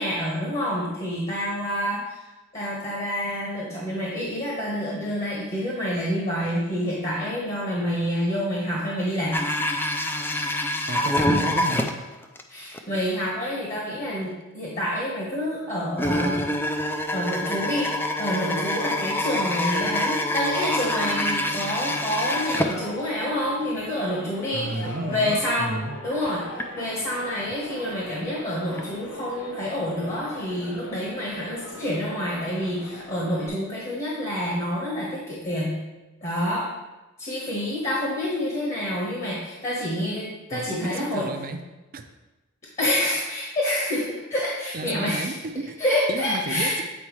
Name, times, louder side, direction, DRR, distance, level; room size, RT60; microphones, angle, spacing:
voice 1, 0.0-2.2 2.5-9.4 12.5-16.4 17.1-17.9 18.2-25.7 26.0-26.4 26.8-35.8 36.2-36.7 37.2-41.3 42.8-45.3 45.8-46.8, left 1 dB, 35° left, -5 dB, 1.2 m, -27 dB
sound 1, 9.3-12.4 12.7-12.8 13.3-13.4 14.1-14.2 16.0-23.3 23.6-23.7 24.4-24.5 25.0-25.2 25.7-26.6 27.1-27.5 28.8-28.9 29.1-29.2, left 1 dB, 10° left, 0.3 m, -26 dB
voice 2, 10.9-11.9 24.5-26.0 40.5-41.6 41.9-42.0 44.7-45.8 46.1-46.8, right 2 dB, 45° right, 7 dB, 0.5 m, -32 dB
sound 2, 20.7-33.5, left 1 dB, 70° left, 0.8 m, -41 dB
8.4 x 4.5 x 3.2 m, 1.1 s
head